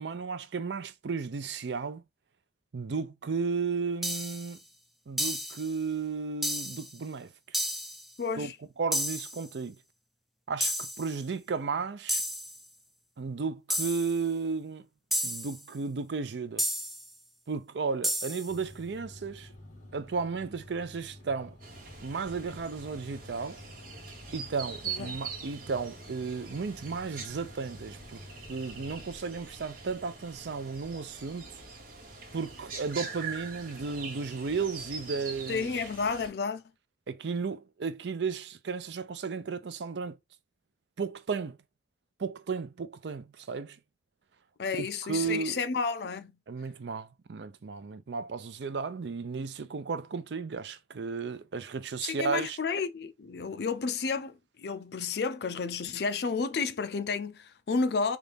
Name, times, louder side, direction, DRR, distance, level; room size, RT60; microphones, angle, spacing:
voice 1, 0.0-2.0 2.7-4.6 5.1-7.3 8.4-9.8 10.5-12.2 13.2-14.9 15.2-16.6 17.5-19.5 19.9-21.6 22.0-23.6 24.3-28.2 28.5-31.4 32.3-35.7 37.1-40.2 41.0-41.6 42.2-43.8 44.7-45.6 46.5-52.6, right 5 dB, 75° right, 0.5 m, -34 dB
sound 1, 4.0-4.5 5.2-5.7 6.4-6.9 7.5-8.1 8.9-9.4 10.6-11.1 12.1-12.6 13.7-14.2 15.1-15.6 16.6-17.1 18.0-18.5, equal, ahead, 0.4 m, -32 dB
voice 2, 8.2-8.6 24.8-25.2 35.5-36.6 44.6-46.4 52.0-58.2, left 5 dB, 65° left, 0.4 m, -31 dB
sound 2, 18.5-29.1, left 1 dB, 45° left, 1.3 m, -51 dB
sound 3, 21.6-36.3, right 5 dB, 55° right, 1.2 m, -43 dB
4.0 x 2.5 x 3.4 m
head